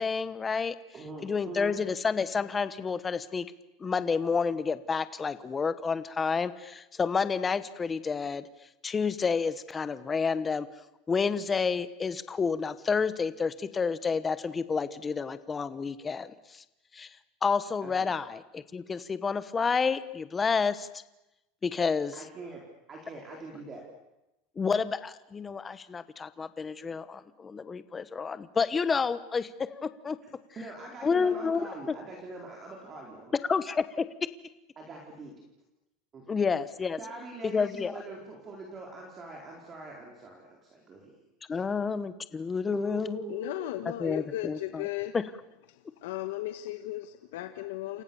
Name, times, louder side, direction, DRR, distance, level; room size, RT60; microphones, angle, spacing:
voice 1, 0.0-0.8 1.2-3.5 3.8-8.5 8.8-10.7 11.1-16.6 16.9-17.1 17.4-20.9 21.6-22.1 24.6-30.2 31.0-32.0 33.5-34.1 36.3-37.0 37.5-38.0 41.5-43.3 44.0-44.8 45.1-45.2, left 5 dB, 15° left, 14 dB, 1.1 m, -29 dB
voice 2, 0.9-1.7 17.8-18.1 22.1-22.6 22.9-23.8 30.6-33.5 34.8-35.3 36.1-36.4 37.0-41.2 41.5-41.6 42.7-43.7, right 3 dB, 25° right, 0 dB, 4.2 m, -43 dB
voice 3, 43.3-45.1 45.7-48.0, left 15 dB, 90° left, 8 dB, 1.7 m, -36 dB
28.5 x 28.5 x 7.1 m, 0.94 s
supercardioid pair, 165°, 0 cm